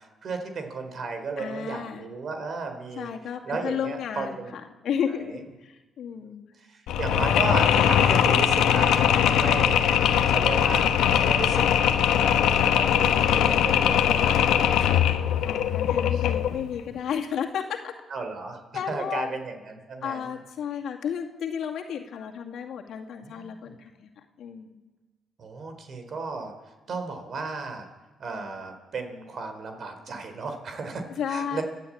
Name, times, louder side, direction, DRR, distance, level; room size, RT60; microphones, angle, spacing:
voice 1, 0.0-3.1 3.4-4.5 5.1-5.2 6.6-9.9 10.3-15.1 16.0-16.1 18.1-18.6 18.9-20.3 23.2-23.8 25.4-27.9 28.2-31.6, right 4 dB, 55° right, 6 dB, 3.9 m, -34 dB
voice 2, 1.4-2.1 3.0-6.4 15.4-17.9 18.7-19.3 20.0-24.9 31.1-31.6, left 8 dB, 70° left, 2 dB, 2.4 m, -33 dB
Mechanisms, 6.9-16.6, left 9 dB, 90° left, 1.3 m, -21 dB
29.5 x 11.5 x 8.7 m, 1.2 s
cardioid pair, 90°, 0 cm